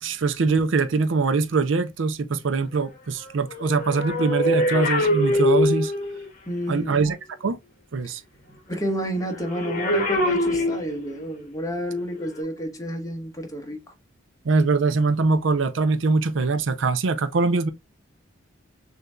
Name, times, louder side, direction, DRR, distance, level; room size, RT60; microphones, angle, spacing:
voice 1, 0.0-5.9 6.7-7.6 7.9-8.2 14.4-17.7, right 4 dB, 65° right, 0.5 m, -23 dB
sound 1, 3.5-6.3 9.4-11.3 12.2-12.4, left 1 dB, 40° left, 1.1 m, -23 dB
voice 2, 6.5-7.0 8.3-13.8, equal, 15° left, 1.0 m, -30 dB
6.5 x 2.7 x 2.2 m
head